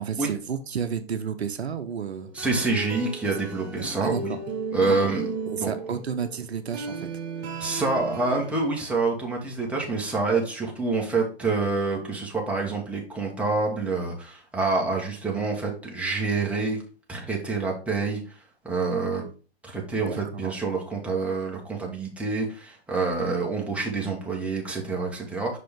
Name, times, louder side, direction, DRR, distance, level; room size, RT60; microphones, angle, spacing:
voice 1, 0.0-2.3 4.0-4.4 4.9-5.0 5.5-7.1 19.9-20.5, right 7 dB, 75° right, 9 dB, 0.8 m, -31 dB
sound 1, 2.1-8.7, right 4 dB, 40° right, 1.6 m, -35 dB
voice 2, 2.3-4.4 4.7-5.3 5.6-5.7 7.6-16.8 17.1-18.4 18.6-19.2 19.6-25.6, right 3 dB, 5° right, -2 dB, 1.5 m, -27 dB
5.9 x 5.1 x 3.7 m, 0.36 s
figure-of-eight pair, 115°, 32 cm